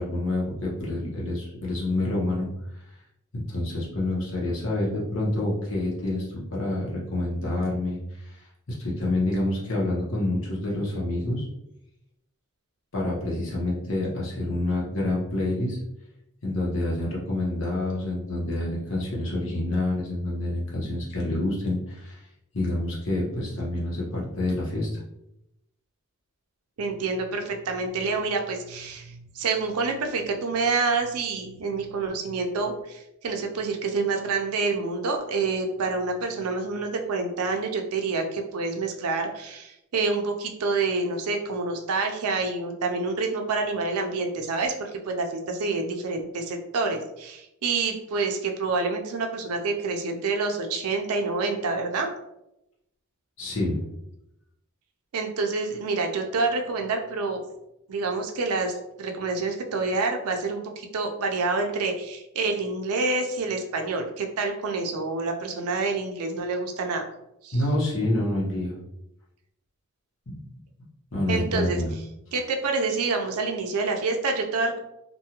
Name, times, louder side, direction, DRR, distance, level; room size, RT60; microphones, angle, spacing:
voice 1, 0.0-2.5 3.3-8.4 8.7-11.5 12.9-15.8 16.4-22.2 22.5-24.9 53.4-53.8 67.5-68.8 70.3-70.4 71.1-71.9, left 1 dB, 60° left, -4 dB, 0.9 m, -27 dB
voice 2, 26.8-52.1 55.1-57.4 57.9-67.0 67.4-67.6 71.3-71.8 72.3-74.8, right 3 dB, 85° right, 4 dB, 0.5 m, -27 dB
2.6 x 2.3 x 2.9 m, 0.84 s
head